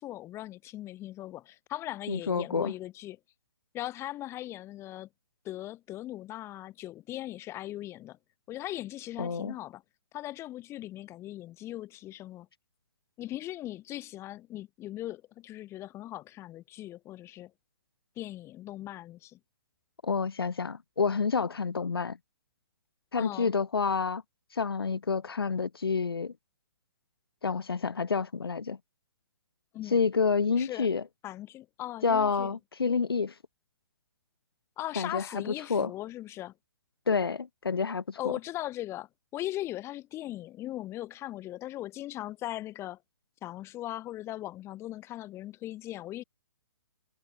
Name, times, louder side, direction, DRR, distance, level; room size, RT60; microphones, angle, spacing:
voice 1, 0.0-3.2 3.7-5.1 5.4-8.2 8.5-9.8 10.1-12.5 13.2-17.5 18.2-19.4 23.2-23.5 29.7-30.0 30.6-30.9 31.2-32.6 34.8-36.5 38.2-43.0 43.4-46.2, left 14 dB, 20° left, 5.3 m, -39 dB
voice 2, 2.1-2.7 9.2-9.5 20.0-22.2 23.1-24.2 24.5-26.3 27.4-28.8 29.9-31.0 32.0-33.3 34.9-35.4 35.7-35.9 37.1-38.3, left 5 dB, 80° left, 3.3 m, -28 dB
hypercardioid pair, 140°, 12 cm